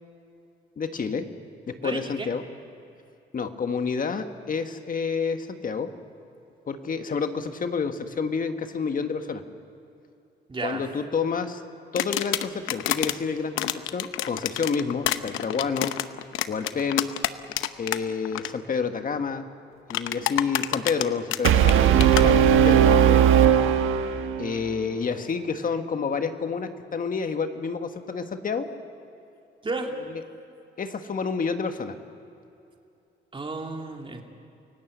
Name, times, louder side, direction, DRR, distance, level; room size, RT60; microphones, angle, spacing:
voice 1, 0.8-1.2 1.7-2.4 3.3-5.9 6.7-9.4 10.6-11.6 11.9-15.9 16.5-17.1 17.8-19.5 19.9-23.2 24.4-28.7 30.1-30.2 30.8-32.0, left 5 dB, 45° left, 7 dB, 1.5 m, -29 dB
voice 2, 1.8-2.3 10.5-10.8 29.6-29.9 33.3-34.2, right 3 dB, 25° right, 2 dB, 2.9 m, -32 dB
sound 1, 12.0-13.1 13.6-18.0 18.2-18.5 19.9-22.2, left 13 dB, 85° left, 0.8 m, -28 dB
Brass instrument, 21.4-24.5, right 9 dB, 90° right, 1.4 m, -18 dB
28.5 x 17.0 x 8.1 m, 2.7 s
cardioid pair, 90°, 20 cm